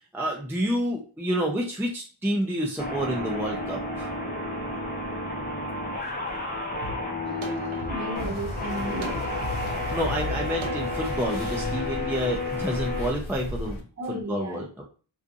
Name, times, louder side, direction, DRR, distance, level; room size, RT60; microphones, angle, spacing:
voice 1, 0.1-4.1 9.9-14.8, equal, 5° right, -1 dB, 0.4 m, -29 dB
sound 1, 2.8-13.1, left 2 dB, 20° left, 0.9 m, -32 dB
sound 2, 6.8-6.9 7.4-11.0, right 2 dB, 70° right, 0.6 m, -37 dB
voice 2, 7.2-9.2 14.0-14.6, right 1 dB, 35° right, -1 dB, 0.9 m, -34 dB
sound 3, 8.1-13.8, left 2 dB, 75° left, 0.7 m, -35 dB
2.6 x 2.4 x 2.5 m, 0.38 s
wide cardioid pair, 60°, 48 cm